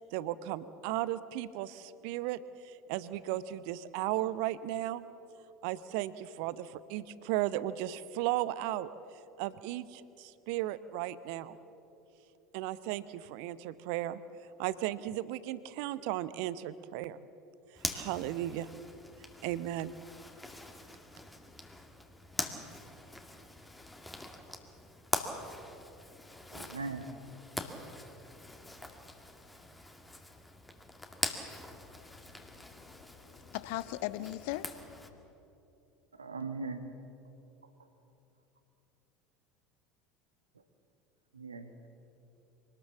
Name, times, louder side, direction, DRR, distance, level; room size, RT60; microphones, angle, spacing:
voice 1, 0.0-5.0 5.6-8.9 9.4-11.6 12.5-14.2 14.6-17.2 17.9-18.7 19.4-19.9, right 14 dB, 55° right, 0.7 m, -35 dB
Zipper (clothing), 17.8-35.1, left 1 dB, 10° left, 2.1 m, -43 dB
voice 2, 26.5-27.1 36.2-36.8 41.3-41.9, right 4 dB, 80° right, 1.5 m, -39 dB
voice 3, 31.7-35.3, left 15 dB, 55° left, 0.7 m, -41 dB
24.5 x 19.0 x 7.3 m
figure-of-eight pair, 70°, 0 cm